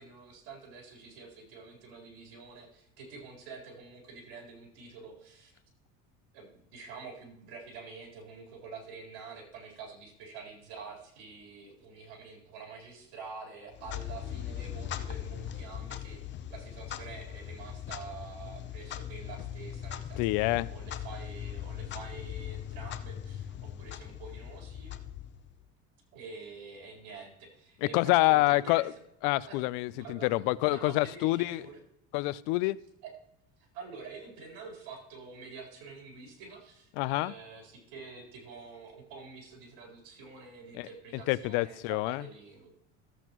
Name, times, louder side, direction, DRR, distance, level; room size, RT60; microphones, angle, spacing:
voice 1, 0.0-5.5 6.3-25.0 26.1-28.8 29.5-29.6 29.9-31.8 33.0-33.1 33.6-42.7, right 4 dB, 80° right, 0 dB, 4.1 m, -47 dB
Clock, 13.7-25.7, left 10 dB, 35° left, 0.7 m, -40 dB
voice 2, 20.2-20.7 27.9-28.9 29.2-31.6 32.1-32.8 37.0-37.3 40.8-40.9 41.3-42.3, left 19 dB, 75° left, 19 dB, 0.5 m, -27 dB
14.0 x 8.0 x 3.0 m, 0.75 s
cardioid pair, 125°, 31 cm